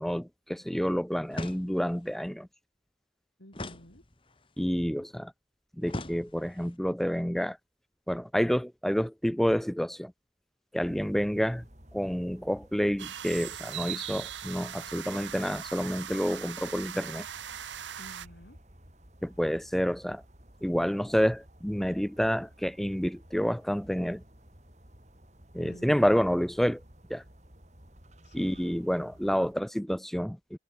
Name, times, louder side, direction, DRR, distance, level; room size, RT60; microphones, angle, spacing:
voice 1, 0.0-2.5 4.6-5.3 5.8-7.6 8.1-10.1 10.7-11.6 11.9-17.3 19.2-20.2 20.6-24.2 25.5-26.8 27.1-27.2 28.3-30.6, equal, ahead, 0.3 m, -29 dB
sound 1, 1.3-2.1 3.5-4.5 5.9-6.7, left 1 dB, 30° left, 1.8 m, -40 dB
voice 2, 3.4-4.0 18.0-18.6 25.6-26.1 28.2-28.6, left 1 dB, 75° left, 5.8 m, -51 dB
sound 2, 10.8-29.5, equal, 40° right, 7.3 m, -55 dB
sound 3, 13.0-18.3, right 10 dB, 90° right, 1.1 m, -40 dB
head